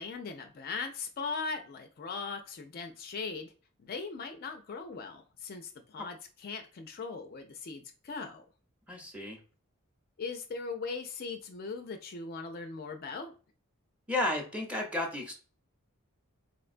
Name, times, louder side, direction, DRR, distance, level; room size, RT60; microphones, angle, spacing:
voice 1, 0.0-3.5 3.8-8.5 10.2-13.3, left 4 dB, 45° left, 0.4 m, -39 dB
voice 2, 8.9-9.4 14.1-15.3, left 1 dB, 5° right, 0.7 m, -32 dB
4.3 x 2.2 x 2.4 m
head